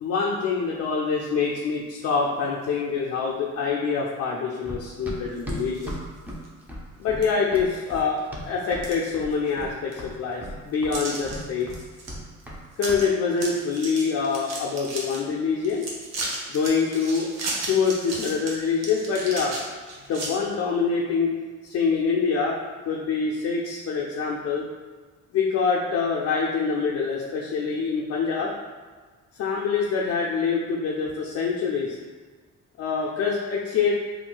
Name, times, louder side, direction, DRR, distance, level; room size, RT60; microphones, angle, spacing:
voice 1, 0.0-5.9 7.0-8.2 8.5-11.7 12.8-15.9 16.5-17.3 17.7-19.6 20.1-21.4 21.6-22.6 22.8-24.7 25.3-28.5 29.3-32.0 32.8-33.9, left 5 dB, 60° left, -3 dB, 0.5 m, -25 dB
Run, 4.7-8.9 9.1-9.7 10.0-12.6 12.9-13.1, equal, 5° right, 0.5 m, -36 dB
sound 1, 5.4-6.0 6.4-6.5 7.2-7.3 7.7-8.2 8.6-9.6 9.9-10.0 10.9-11.3 11.7-12.1 12.4-12.5 12.7-13.1 13.3-15.2 15.6-20.3, right 2 dB, 60° right, 0.8 m, -34 dB
2.5 x 2.2 x 3.7 m, 1.4 s
cardioid pair, 90°, 30 cm